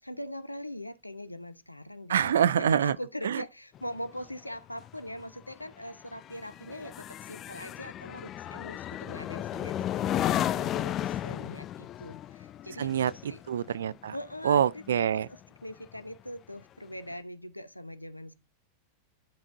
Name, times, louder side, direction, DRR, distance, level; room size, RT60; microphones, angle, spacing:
voice 1, 0.0-13.4 14.1-18.3, left 1 dB, 85° left, 0.8 m, -42 dB
voice 2, 2.1-3.0 3.2-3.4 12.8-14.1 14.4-15.3, right 9 dB, 65° right, 0.4 m, -26 dB
sound 1, 3.7-15.5 15.9-16.2, left 12 dB, 30° left, 0.3 m, -34 dB
10.5 x 6.0 x 2.6 m
figure-of-eight pair, 90°, 0 cm